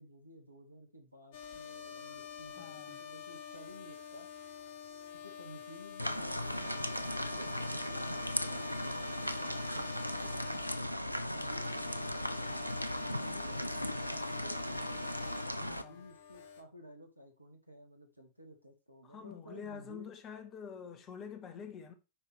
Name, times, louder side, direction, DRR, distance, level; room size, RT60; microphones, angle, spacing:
voice 1, 0.0-4.3 5.2-10.7 11.1-12.2 13.0-20.1, equal, 85° right, 1.8 m, -54 dB
sound 1, 1.3-16.6, left 8 dB, 55° left, 1.4 m, -48 dB
voice 2, 2.6-3.0 15.5-16.0 19.0-21.9, left 7 dB, 30° left, 1.4 m, -47 dB
sound 2, 6.0-15.8, equal, 90° left, 0.5 m, -37 dB
9.7 x 4.8 x 3.4 m
figure-of-eight pair, 90°, 0 cm